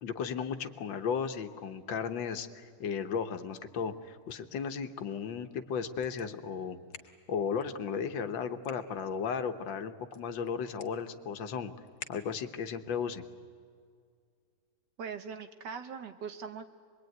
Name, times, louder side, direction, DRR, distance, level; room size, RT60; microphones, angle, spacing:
voice 1, 0.0-6.8 7.3-11.7 12.1-13.2, left 6 dB, 90° left, 9 dB, 1.8 m, -35 dB
sound 1, 4.0-12.7, left 5 dB, 60° left, 1.9 m, -55 dB
voice 2, 15.0-16.7, right 6 dB, 70° right, 8 dB, 1.8 m, -41 dB
25.0 x 21.5 x 9.3 m, 2.1 s
omnidirectional pair, 2.0 m